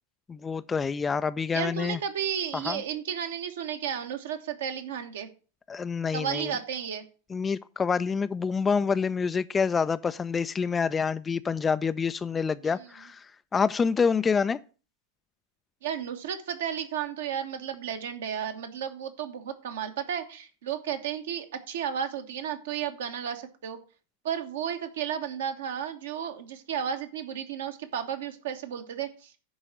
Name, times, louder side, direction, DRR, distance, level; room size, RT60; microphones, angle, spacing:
voice 1, 0.3-2.0 2.7-2.8 5.7-6.5 7.3-13.3 13.5-14.6, left 5 dB, 15° left, 0.4 m, -27 dB
voice 2, 1.5-5.3 6.1-7.0 12.6-12.9 15.8-23.8 24.2-29.3, right 8 dB, 60° right, 1.3 m, -33 dB
10.0 x 4.0 x 7.5 m
figure-of-eight pair, 90°, 0 cm